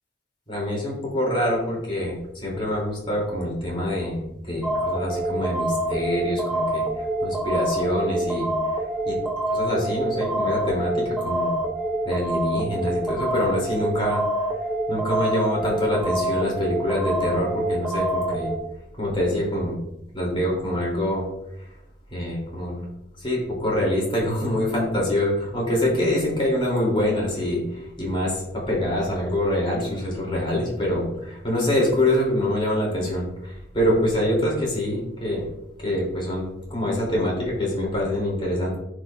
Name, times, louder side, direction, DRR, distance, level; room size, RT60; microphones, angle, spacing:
voice 1, 0.5-8.5 9.0-9.2 9.5-11.5 12.0-14.2 14.9-18.5 19.0-19.8 20.1-21.2 22.1-22.8 23.2-35.5 35.8-38.8, left 1 dB, 30° left, -3 dB, 3.1 m, -25 dB
sound 1, 4.6-18.6, right 1 dB, ahead, 0.7 m, -26 dB
13.5 x 5.0 x 2.5 m, 0.82 s
head